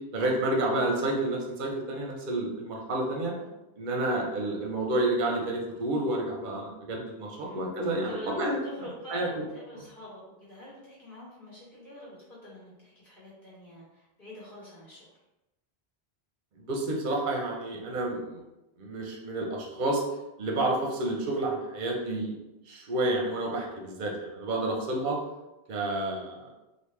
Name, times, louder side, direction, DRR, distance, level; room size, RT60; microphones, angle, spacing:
voice 1, 0.1-3.3 3.8-9.4 16.6-18.4 18.8-20.0 20.4-22.4 22.7-25.2 25.7-26.5, right 2 dB, 55° right, 0 dB, 0.7 m, -30 dB
voice 2, 3.2-3.6 7.3-15.1, left 1 dB, 55° left, -7 dB, 1.1 m, -46 dB
3.5 x 2.5 x 3.1 m, 0.98 s
omnidirectional pair, 1.1 m